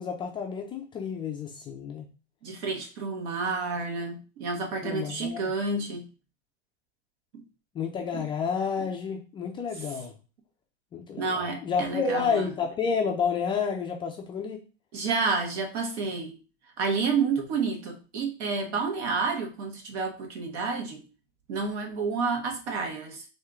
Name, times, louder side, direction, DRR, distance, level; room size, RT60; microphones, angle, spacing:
voice 1, 0.0-2.0 4.8-5.5 7.7-10.1 10.9-14.6, left 6 dB, 15° left, 2 dB, 0.3 m, -30 dB
voice 2, 2.4-6.1 7.3-7.4 8.1-8.3 9.7-9.9 11.2-12.5 14.9-16.4 16.8-21.0 21.5-23.2, right 4 dB, 75° right, 3 dB, 1.5 m, -30 dB
4.3 x 2.7 x 3.6 m, 0.34 s
supercardioid pair, 135°, 34 cm